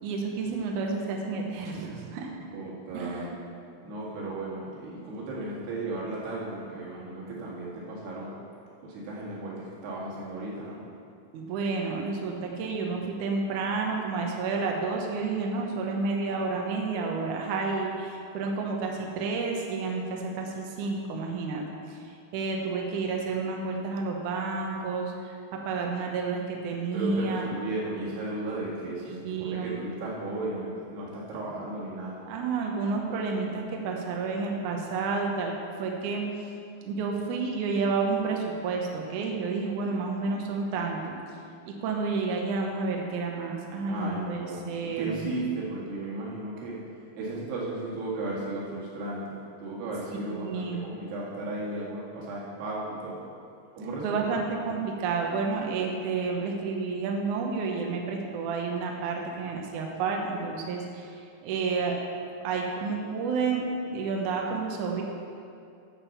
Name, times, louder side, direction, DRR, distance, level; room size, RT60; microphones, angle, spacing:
voice 1, 0.0-2.3 2.9-3.3 11.3-22.0 22.3-27.5 29.0-29.9 32.3-36.2 36.8-41.2 41.7-45.3 50.3-50.9 54.0-62.0 62.4-65.0, right 4 dB, 65° right, 1 dB, 2.2 m, -30 dB
voice 2, 2.5-3.3 3.8-8.4 8.8-10.8 26.9-32.2 43.9-46.8 47.2-53.2 53.8-54.3, right 2 dB, 90° right, -5 dB, 4.0 m, -35 dB
11.0 x 5.5 x 7.1 m, 2.5 s
omnidirectional pair, 4.5 m